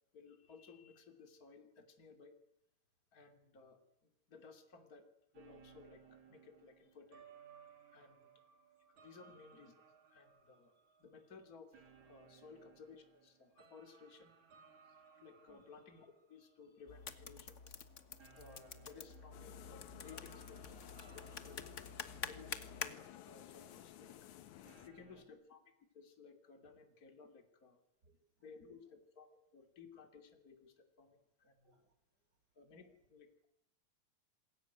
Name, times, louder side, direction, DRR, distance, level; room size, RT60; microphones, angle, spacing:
voice 1, 0.1-2.3 3.1-5.1 5.3-7.3 7.9-8.3 8.9-9.7 10.1-10.7 11.0-11.8 12.0-14.3 14.9-17.6 18.3-21.8 22.2-24.1 24.9-25.6 25.9-27.8 28.4-31.7 32.5-33.3, left 5 dB, 30° left, 5 dB, 3.2 m, -59 dB
sound 1, 5.3-17.1 17.4-17.7 18.2-23.6 24.0-24.1 24.6-25.2, right 6 dB, 75° right, 4.0 m, -64 dB
voice 2, 8.9-9.4 15.5-15.7 24.7-25.4 28.0-28.9 31.4-32.4 32.7-33.0, right 2 dB, 35° right, 8 dB, 4.6 m, -75 dB
sound 2, 16.9-22.9, left 5 dB, 45° left, 0.9 m, -48 dB
sound 3, 19.3-24.9, left 12 dB, 80° left, 2.6 m, -55 dB
27.5 x 21.0 x 9.4 m, 0.79 s
omnidirectional pair, 3.3 m